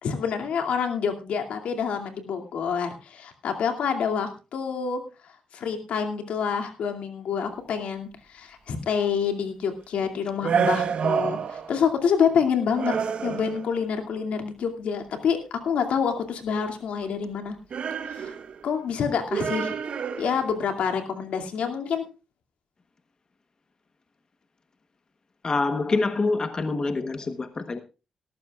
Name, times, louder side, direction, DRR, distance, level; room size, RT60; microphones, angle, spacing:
voice 1, 0.0-5.0 5.5-13.0 13.2-17.6 18.1-18.3 18.6-19.8 20.2-22.0, left 6 dB, 80° left, 5 dB, 2.4 m, -27 dB
sound 1, 10.4-11.9 12.8-13.8 17.7-18.7 19.3-20.6, right 6 dB, 60° right, 1.1 m, -28 dB
voice 2, 25.4-27.8, left 3 dB, 35° left, 9 dB, 1.1 m, -26 dB
18.5 x 13.5 x 2.4 m, 0.30 s
cardioid pair, 100°, 2 cm